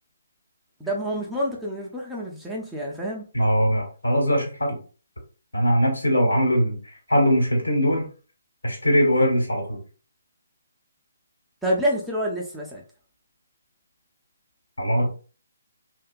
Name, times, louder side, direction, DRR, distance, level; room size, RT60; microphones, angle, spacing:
voice 1, 0.8-3.2 11.6-12.8, equal, ahead, -4 dB, 0.4 m, -27 dB
voice 2, 3.3-4.8 5.5-6.8 7.1-8.1 8.6-9.8 14.8-15.1, equal, 75° left, -1 dB, 1.2 m, -21 dB
2.7 x 2.2 x 2.4 m, 0.37 s
figure-of-eight pair, 140°, 0 cm